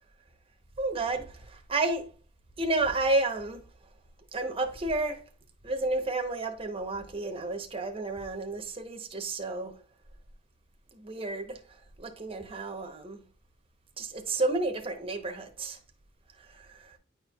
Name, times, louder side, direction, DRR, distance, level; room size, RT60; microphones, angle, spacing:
voice 1, 0.8-2.1 2.6-3.7 4.3-5.3 5.6-9.8 10.9-13.3 14.0-15.8 16.3-17.0, right 2 dB, 30° right, 0.9 m, -31 dB
9.5 x 4.4 x 2.3 m
head